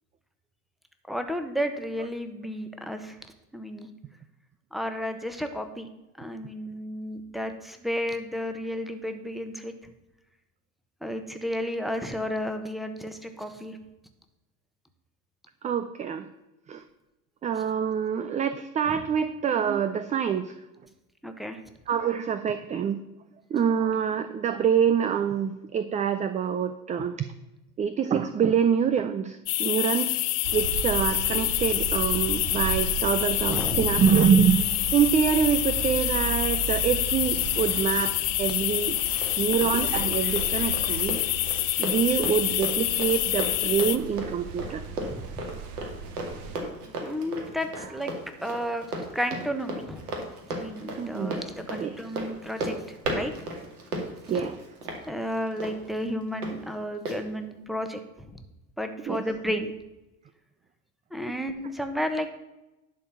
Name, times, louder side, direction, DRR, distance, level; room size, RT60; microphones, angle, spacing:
voice 1, 1.1-3.2 3.5-3.9 4.7-5.9 6.2-9.7 11.0-13.8 17.6-17.7 18.9-19.1 21.2-21.6 33.5-34.0 45.0-45.4 47.0-48.1 48.4-48.9 49.1-50.1 50.5-53.3 55.0-58.3 58.8-59.7 61.1-62.3, equal, ahead, 7 dB, 1.1 m, -32 dB
voice 2, 15.6-16.2 16.7-16.8 17.4-20.5 21.9-23.0 23.5-27.2 27.8-30.2 30.5-38.1 38.4-39.0 39.4-41.2 41.8-44.8 51.0-51.3 51.7-52.0 54.3-54.6 59.1-59.2, right 7 dB, 15° right, 11 dB, 0.4 m, -25 dB
sound 1, 29.5-44.0, left 17 dB, 45° left, 0.7 m, -27 dB
sound 2, 30.4-46.6, right 7 dB, 60° right, 1.4 m, -36 dB
Run, 38.7-56.5 57.1-57.2, right 1 dB, 80° right, 2.2 m, -36 dB
11.0 x 4.5 x 7.0 m, 0.96 s
hypercardioid pair, 80°, 46 cm